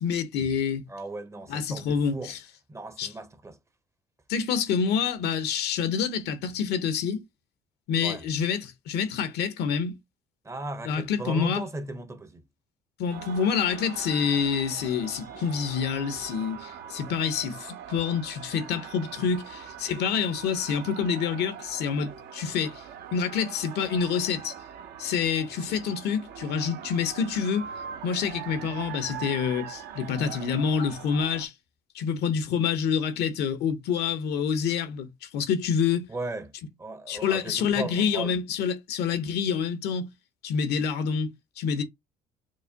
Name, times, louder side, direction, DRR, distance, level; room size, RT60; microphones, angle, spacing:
voice 1, 0.0-0.8 1.5-2.4 3.0-3.1 4.3-7.2 7.9-9.9 10.8-11.6 13.0-22.8 23.1-24.5 25.0-27.7 28.0-31.5 31.9-36.1 37.1-40.1 40.4-41.8, left 7 dB, 75° left, 0.7 m, -27 dB
voice 2, 0.9-2.3 2.7-3.6 8.0-8.2 10.4-12.4 36.1-36.5 36.8-38.4, right 2 dB, 15° right, 0.5 m, -36 dB
sound 1, 13.1-31.5, right 9 dB, 70° right, 0.6 m, -42 dB
4.7 x 2.1 x 2.7 m
cardioid pair, 110°, 17 cm